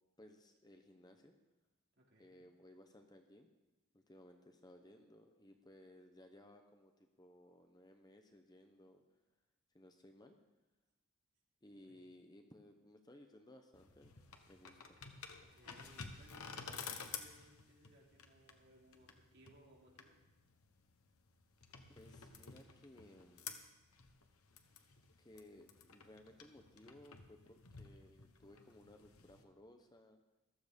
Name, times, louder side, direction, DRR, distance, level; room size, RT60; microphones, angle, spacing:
voice 1, 0.2-1.3 2.2-3.5 3.9-9.0 9.7-10.4 11.6-14.1 14.5-15.0 21.9-23.4 25.2-30.2, left 1 dB, 20° left, 5 dB, 0.8 m, -60 dB
voice 2, 1.9-2.4 11.7-12.0 15.4-16.7 17.0-20.2, equal, 50° right, -3 dB, 3.4 m, -65 dB
sound 1, 13.7-29.4, left 6 dB, 80° left, 1.2 m, -53 dB
14.5 x 12.5 x 5.2 m, 1.1 s
head